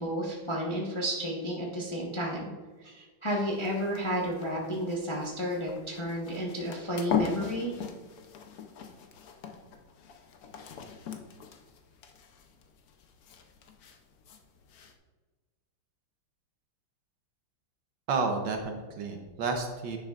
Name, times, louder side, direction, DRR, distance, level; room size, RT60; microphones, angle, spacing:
voice 1, 0.0-2.5 2.8-7.7, equal, 20° left, -4 dB, 0.7 m, -32 dB
sound 1, 3.3-14.9, left 7 dB, 70° left, 0.9 m, -40 dB
voice 2, 18.1-20.0, right 4 dB, 65° right, 4 dB, 1.3 m, -31 dB
10.0 x 6.7 x 2.4 m, 1.4 s
omnidirectional pair, 2.4 m